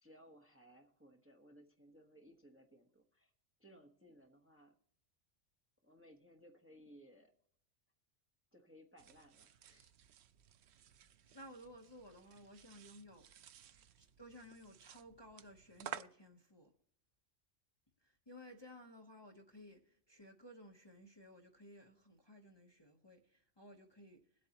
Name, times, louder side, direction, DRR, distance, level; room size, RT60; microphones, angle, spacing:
voice 1, 0.0-3.3 3.6-4.8 5.8-7.3 8.5-9.9, equal, 10° right, 1.0 m, -62 dB
sound 1, 9.0-16.0, right 9 dB, 70° right, 0.8 m, -54 dB
voice 2, 11.3-13.3 13.6-16.7 18.0-24.2, equal, 25° left, 1.0 m, -57 dB
21.5 x 8.5 x 2.9 m
omnidirectional pair, 1.2 m